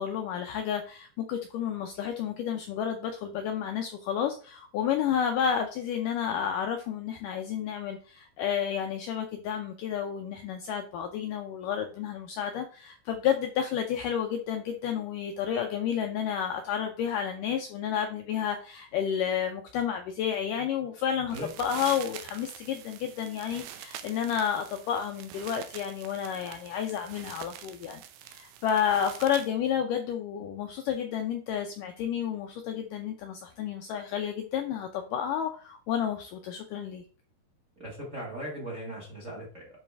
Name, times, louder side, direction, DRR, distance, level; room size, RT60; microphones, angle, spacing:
voice 1, 0.0-37.0, left 8 dB, 90° left, 5 dB, 1.8 m, -31 dB
sound 1, 21.2-29.5, right 11 dB, 85° right, 2.7 m, -45 dB
voice 2, 37.8-39.7, right 1 dB, 35° right, -1 dB, 1.2 m, -38 dB
10.5 x 4.2 x 3.4 m, 0.41 s
omnidirectional pair, 4.6 m